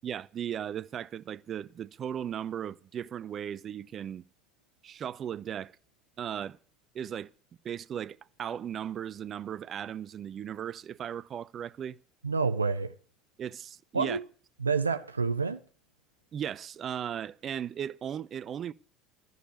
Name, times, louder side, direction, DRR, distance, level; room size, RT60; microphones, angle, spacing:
voice 1, 0.0-4.2 4.8-5.7 6.2-6.6 6.9-7.3 7.6-12.0 13.4-14.2 16.3-18.7, right 9 dB, 40° right, 0.6 m, -37 dB
voice 2, 12.2-12.9 13.9-14.2 14.6-15.6, right 4 dB, 85° right, 0.5 m, -28 dB
13.5 x 6.7 x 9.1 m
figure-of-eight pair, 65°, 0 cm